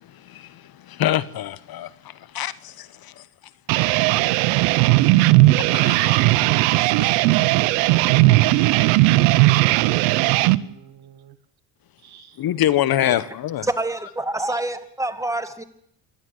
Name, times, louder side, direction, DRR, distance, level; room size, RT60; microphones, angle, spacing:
voice 1, 0.0-3.2 5.6-6.4 7.0-7.1 12.4-13.7, left 12 dB, 50° left, 1.2 m, -26 dB
sound 1, 3.7-10.6, right 19 dB, 85° right, 0.9 m, -17 dB
voice 2, 7.9-11.4 12.0-12.4, right 11 dB, 55° right, 1.8 m, -44 dB
voice 3, 13.7-15.6, right 2 dB, 5° right, 2.4 m, -26 dB
28.0 x 12.5 x 7.9 m
supercardioid pair, 85°, 45 cm